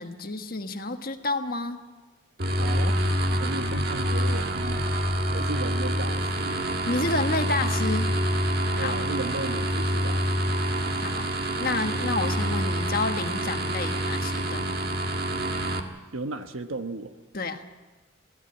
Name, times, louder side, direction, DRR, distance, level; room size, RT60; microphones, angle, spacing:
voice 1, 0.0-1.8 6.8-8.1 8.7-8.9 11.0-11.3 11.6-14.8 17.3-17.6, left 2 dB, 45° left, 6 dB, 1.4 m, -29 dB
sound 1, 2.4-15.8, equal, 45° right, 1.8 m, -26 dB
voice 2, 2.5-3.0 3.3-4.9 5.3-6.6 8.8-10.6 16.1-17.1, right 2 dB, 80° right, 8 dB, 1.3 m, -35 dB
23.0 x 16.5 x 8.8 m, 1.3 s
head